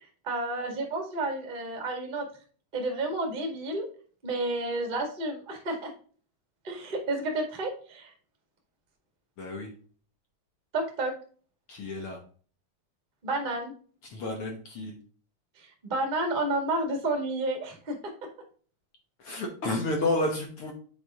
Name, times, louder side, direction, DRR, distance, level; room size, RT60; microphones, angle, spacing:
voice 1, 0.2-2.3 2.7-3.8 4.2-5.9 6.6-8.1 10.7-11.1 13.2-13.7 15.6-18.1, right 2 dB, 25° right, 3 dB, 1.1 m, -31 dB
voice 2, 9.4-9.7 11.7-12.2 14.1-15.0 19.2-20.7, left 2 dB, 65° left, 2 dB, 1.4 m, -31 dB
8.3 x 4.8 x 3.6 m, 0.42 s
omnidirectional pair, 4.1 m